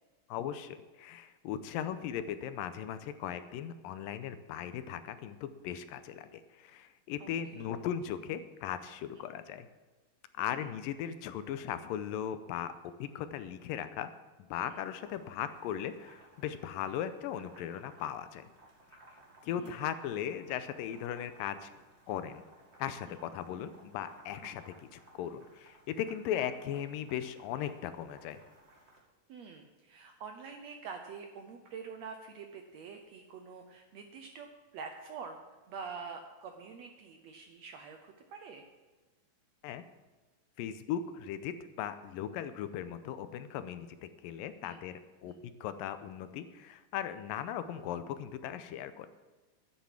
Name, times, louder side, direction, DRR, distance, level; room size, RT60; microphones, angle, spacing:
voice 1, 0.3-9.7 10.4-12.7 13.0-14.1 14.5-18.5 19.4-21.7 22.1-22.4 22.8-28.4 39.6-39.8 40.6-49.1, left 9 dB, 90° left, 11 dB, 2.3 m, -38 dB
voice 2, 7.2-7.6 9.1-9.2 10.4-10.7 14.7-14.8 19.5-19.9 23.1-23.2 24.4-24.5 29.3-34.5 34.7-35.4 35.7-38.6 44.6-44.8 45.2-45.3, right 5 dB, 75° right, 5 dB, 1.6 m, -46 dB
sound 1, 14.7-29.0, right 1 dB, 25° right, 1.8 m, -60 dB
11.5 x 10.5 x 5.9 m, 1.3 s
omnidirectional pair, 4.0 m